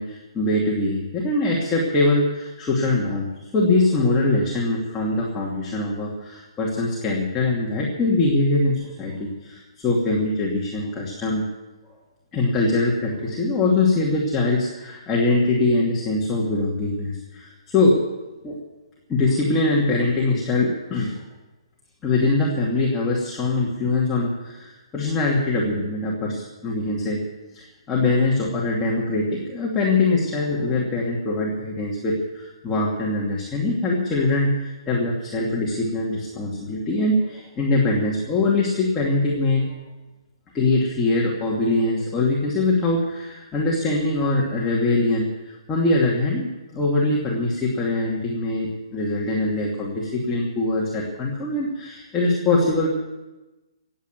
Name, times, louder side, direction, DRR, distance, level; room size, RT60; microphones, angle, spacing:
voice 1, 0.0-3.3 3.5-11.4 12.3-18.0 18.4-18.6 19.1-21.1 22.0-27.2 27.5-39.7 40.5-52.9, left 2 dB, 15° left, -4 dB, 2.6 m, -23 dB
16.5 x 8.8 x 9.3 m, 1.1 s
hypercardioid pair, 145°, 3 cm